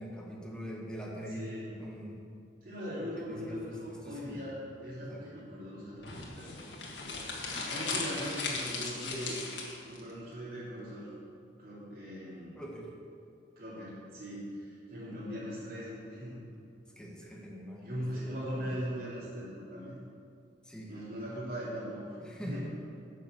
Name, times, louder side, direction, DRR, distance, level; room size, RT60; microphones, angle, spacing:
voice 1, 0.0-1.5 1.8-2.2 3.2-4.4 5.0-5.4 12.5-12.9 17.0-18.7 20.7-20.9 22.2-22.7, equal, 5° left, -3 dB, 1.6 m, -43 dB
voice 2, 1.3-1.7 2.6-6.6 6.9-7.2 7.7-9.4 9.8-11.1 11.6-12.6 13.6-16.5 17.8-20.0 20.9-22.2 22.4-22.7, equal, 50° right, -10 dB, 3.0 m, -40 dB
sound 1, 6.0-10.0, left 4 dB, 75° left, 1.9 m, -37 dB
11.5 x 6.6 x 6.8 m, 2.5 s
head